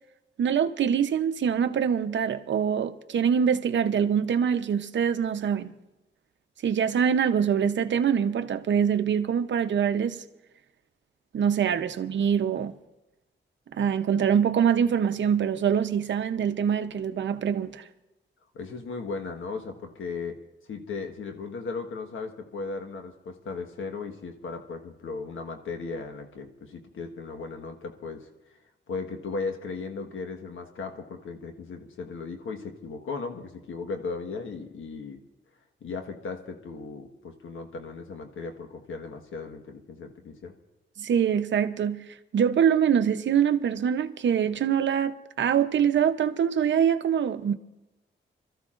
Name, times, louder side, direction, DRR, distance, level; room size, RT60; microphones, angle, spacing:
voice 1, 0.4-5.7 6.6-10.2 11.3-12.8 13.7-17.8 41.0-47.5, right 8 dB, 65° right, 0.8 m, -24 dB
voice 2, 18.5-20.4 20.7-28.3 28.9-35.2 35.8-40.5, left 4 dB, 80° left, 1.4 m, -36 dB
26.0 x 13.5 x 2.5 m
cardioid pair, 95°, 20 cm